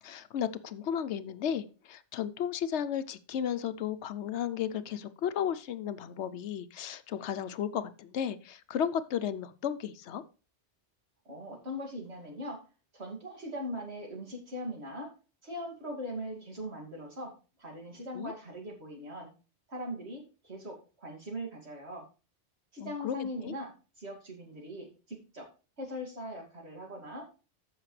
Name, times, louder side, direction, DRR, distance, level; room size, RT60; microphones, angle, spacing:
voice 1, 0.0-10.2 18.1-18.3 22.8-23.5, left 9 dB, 75° left, 12 dB, 0.9 m, -34 dB
voice 2, 11.3-12.6 12.9-15.1 15.4-17.3 17.6-19.3 19.7-22.0 22.7-25.5 25.8-27.3, equal, 65° right, 0 dB, 2.7 m, -40 dB
14.0 x 5.7 x 3.2 m, 0.34 s
omnidirectional pair, 1.2 m